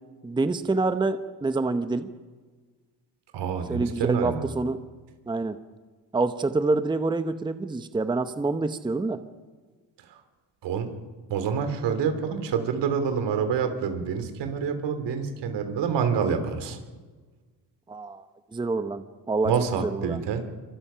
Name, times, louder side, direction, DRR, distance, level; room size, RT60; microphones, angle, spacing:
voice 1, 0.2-2.1 3.7-4.8 5.3-5.6 6.1-9.2 17.9-18.2 18.5-19.5 19.8-20.2, right 3 dB, 10° right, 10 dB, 0.9 m, -26 dB
voice 2, 3.3-4.4 10.6-10.9 11.3-16.8 19.4-20.4, right 6 dB, 75° right, 8 dB, 3.3 m, -27 dB
27.5 x 24.5 x 5.7 m, 1.4 s
cardioid pair, 135°, 42 cm